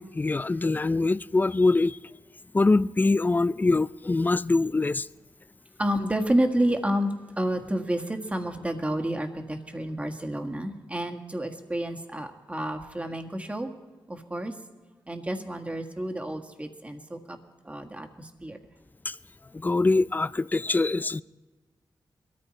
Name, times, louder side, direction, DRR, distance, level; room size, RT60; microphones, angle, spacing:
voice 1, 0.0-2.0 2.5-5.1 19.1-19.2 19.5-21.2, left 3 dB, 20° left, 0.4 m, -23 dB
voice 2, 5.8-7.1 7.4-13.7 14.1-14.5 15.1-17.4 17.7-18.6, right 1 dB, 15° right, 1.7 m, -29 dB
21.5 x 14.0 x 4.3 m
wide cardioid pair, 85°, 8 cm